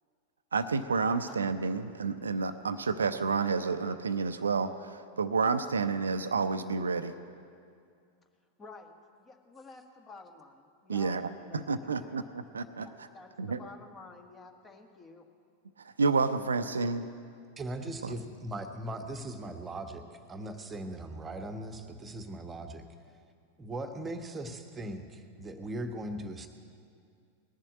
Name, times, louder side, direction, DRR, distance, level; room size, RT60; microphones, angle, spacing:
voice 1, 0.5-7.1 10.9-11.3 11.5-12.9 13.4-13.6 15.8-17.1 18.0-18.1, right 4 dB, 70° right, 10 dB, 0.5 m, -30 dB
voice 2, 8.6-12.3 12.8-15.2, left 3 dB, 20° left, 5 dB, 1.4 m, -51 dB
voice 3, 17.6-22.8 23.6-26.5, right 1 dB, 15° right, 7 dB, 1.2 m, -39 dB
19.5 x 7.4 x 9.0 m, 2.3 s
figure-of-eight pair, 90°, 0 cm